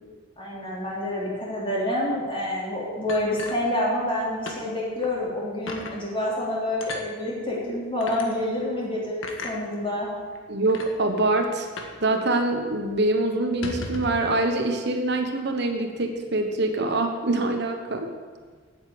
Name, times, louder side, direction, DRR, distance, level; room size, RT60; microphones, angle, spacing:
voice 1, 0.4-10.1, left 1 dB, 25° left, -4 dB, 3.5 m, -28 dB
sound 1, 3.1-4.2 4.5-4.6 5.0-5.1 5.7-6.0 6.8-7.1 8.0-8.3 9.2-9.6 10.3-10.4 10.7-10.9 11.8-12.0 12.3-12.4 12.7-12.9 13.5-14.2, left 2 dB, 85° left, 1.5 m, -35 dB
voice 2, 10.5-11.7 12.0-18.1, right 2 dB, 60° right, 5 dB, 1.1 m, -24 dB
9.0 x 8.4 x 8.5 m, 1.5 s
head